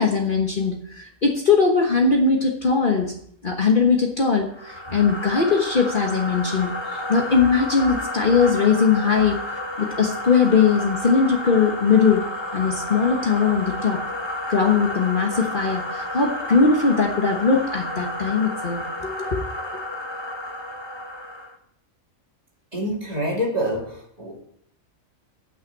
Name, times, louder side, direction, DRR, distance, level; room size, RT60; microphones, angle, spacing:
voice 1, 0.0-3.1 3.4-12.2 12.5-14.0 14.5-19.4, left 5 dB, 40° left, 1 dB, 1.3 m, -20 dB
sound 1, 4.5-21.6, left 1 dB, 20° left, 1.2 m, -31 dB
voice 2, 22.7-24.4, equal, 30° right, -2 dB, 2.6 m, -26 dB
9.1 x 6.1 x 7.8 m, 0.68 s
omnidirectional pair, 1.4 m